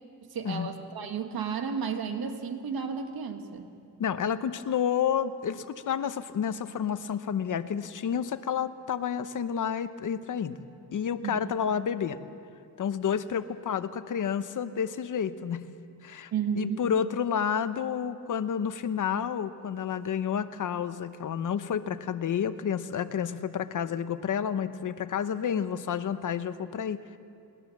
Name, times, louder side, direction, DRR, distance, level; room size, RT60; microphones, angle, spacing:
voice 1, 0.3-3.7 11.2-11.4 16.3-16.8, right 6 dB, 65° right, 6 dB, 1.9 m, -32 dB
voice 2, 4.0-10.5 10.9-12.2 12.8-15.6 16.0-16.3 16.6-27.0, left 8 dB, 50° left, 12 dB, 0.9 m, -30 dB
22.0 x 19.0 x 7.3 m, 2.4 s
wide cardioid pair, 170°, 39 cm